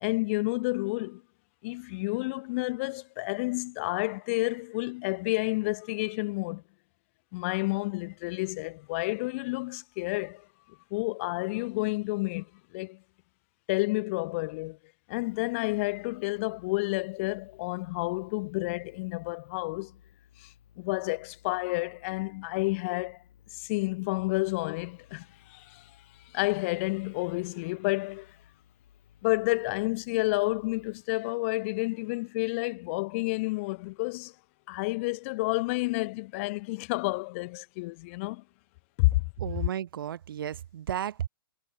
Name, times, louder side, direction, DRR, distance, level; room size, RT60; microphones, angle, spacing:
voice 1, 0.0-1.2 1.6-6.6 7.3-10.5 10.9-13.0 13.7-14.8 15.1-19.9 20.4-23.2 23.5-25.9 26.3-28.3 29.2-34.3 34.7-38.4 39.0-39.2, left 24 dB, 35° left, 0.5 m, -30 dB
sound 1, 15.1-31.0, left 10 dB, 65° left, 6.0 m, -60 dB
voice 2, 39.4-41.3, right 10 dB, 65° right, 1.3 m, -33 dB
hypercardioid pair, 150°, 12 cm